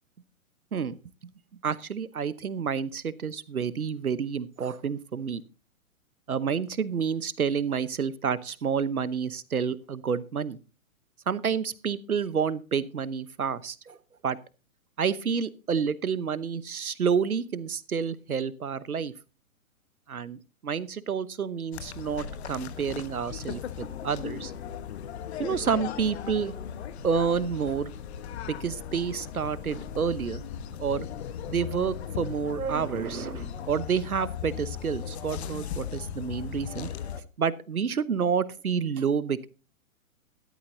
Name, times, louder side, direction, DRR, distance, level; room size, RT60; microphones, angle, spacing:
voice 1, 1.6-5.4 6.3-10.6 11.3-14.0 14.2-14.4 15.0-19.1 20.1-24.5 25.4-26.7 27.0-27.9 28.5-30.4 30.8-31.1 31.5-36.9 37.4-39.5, right 6 dB, 85° right, 17 dB, 1.1 m, -29 dB
sound 1, 21.7-37.2, left 8 dB, 50° left, 1.3 m, -37 dB
15.0 x 12.5 x 2.7 m, 0.33 s
figure-of-eight pair, 125°, 42 cm